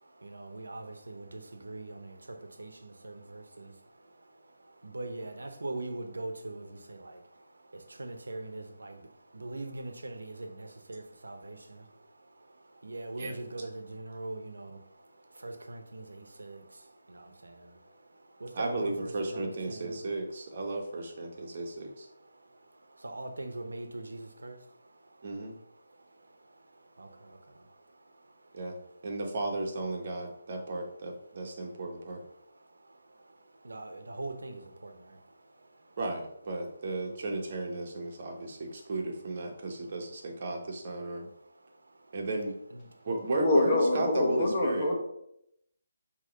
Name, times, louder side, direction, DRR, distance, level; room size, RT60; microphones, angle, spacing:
voice 1, 0.0-20.0 22.3-25.2 25.8-28.5 32.5-36.0 41.5-42.2 42.7-43.1, right 2 dB, 90° right, 0.8 m, -43 dB
voice 2, 18.5-22.1 25.2-25.5 28.5-28.8 29.0-32.2 36.0-41.3 42.1-42.5 43.0-44.9, right 2 dB, 45° right, 1.3 m, -34 dB
voice 3, 43.4-44.9, left 2 dB, 35° left, 1.3 m, -25 dB
6.4 x 3.0 x 5.3 m
hypercardioid pair, 160°, 0 cm